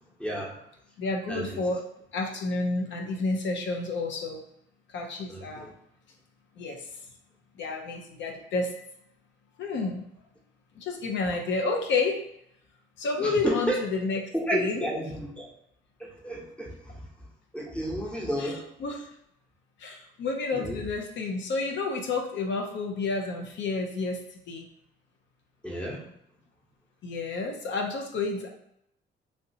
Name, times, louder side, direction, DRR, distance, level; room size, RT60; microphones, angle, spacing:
voice 1, 0.2-0.5 1.3-1.6 5.3-5.7 13.2-13.9 14.3-15.5 16.0-17.0 17.5-18.6 20.5-20.8 25.6-26.0, equal, 5° left, -2 dB, 0.8 m, -31 dB
voice 2, 1.0-1.8 2.1-4.4 4.9-5.7 6.6-6.9 7.6-8.7 9.6-10.0 10.8-12.3 13.0-14.9 18.4-19.1 19.8-24.7 27.0-28.5, left 3 dB, 65° left, 2 dB, 0.5 m, -30 dB
3.1 x 2.7 x 2.7 m, 0.76 s
cardioid pair, 90°, 20 cm